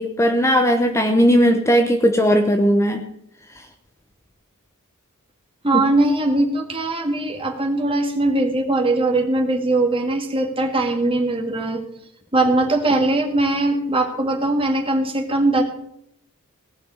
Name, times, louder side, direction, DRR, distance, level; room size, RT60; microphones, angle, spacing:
voice 1, 0.0-3.0 5.7-5.8, equal, 15° left, 5 dB, 0.9 m, -17 dB
voice 2, 5.6-11.8 12.3-15.6, right 2 dB, 25° right, 2 dB, 2.0 m, -20 dB
18.0 x 6.0 x 8.1 m, 0.76 s
head